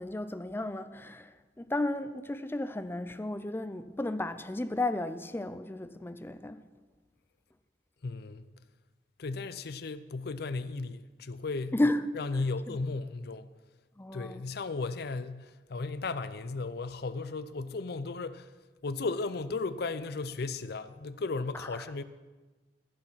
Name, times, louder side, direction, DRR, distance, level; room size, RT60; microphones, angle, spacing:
voice 1, 0.0-6.6 11.7-12.0 12.7-12.8 14.0-14.4 21.5-21.9, left 1 dB, 15° left, 0.5 m, -33 dB
voice 2, 8.0-8.5 9.2-11.7 12.2-13.5 14.1-18.5 18.8-22.0, left 3 dB, 60° left, 0.5 m, -35 dB
14.5 x 6.6 x 5.7 m
head